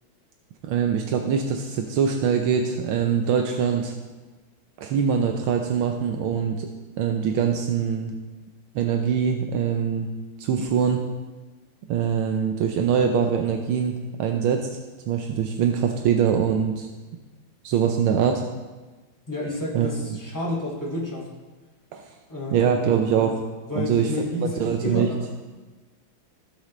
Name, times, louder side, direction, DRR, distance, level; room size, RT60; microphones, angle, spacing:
voice 1, 0.6-3.9 4.8-6.7 7.0-8.2 8.7-10.1 10.4-11.0 11.9-14.7 15.1-16.9 17.6-18.4 19.7-19.9 21.9-22.0 22.5-23.4 23.8-24.1 24.4-25.1, right 7 dB, 85° right, 3 dB, 1.6 m, -23 dB
voice 2, 19.3-21.3 22.3-22.8 23.7-25.3, left 2 dB, 10° left, -4 dB, 2.3 m, -30 dB
15.5 x 7.8 x 3.2 m, 1.3 s
omnidirectional pair, 2.2 m